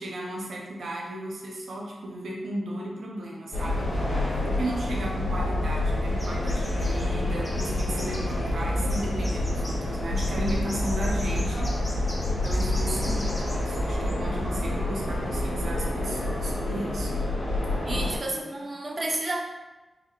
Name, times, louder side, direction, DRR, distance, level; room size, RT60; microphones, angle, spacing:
voice 1, 0.0-4.1 4.4-11.9 12.4-17.3 17.9-18.4, right 1 dB, 75° right, -2 dB, 0.7 m, -35 dB
sound 1, 3.5-18.2, left 1 dB, 80° left, 1.3 m, -28 dB
sound 2, 6.2-7.0 7.4-8.6 8.9-9.7 10.1-13.8 14.1-14.2, equal, 10° left, 0.9 m, -41 dB
voice 2, 17.8-19.4, right 2 dB, 30° right, 0 dB, 0.5 m, -31 dB
4.0 x 2.7 x 3.1 m, 1.1 s
wide cardioid pair, 155°, 0 cm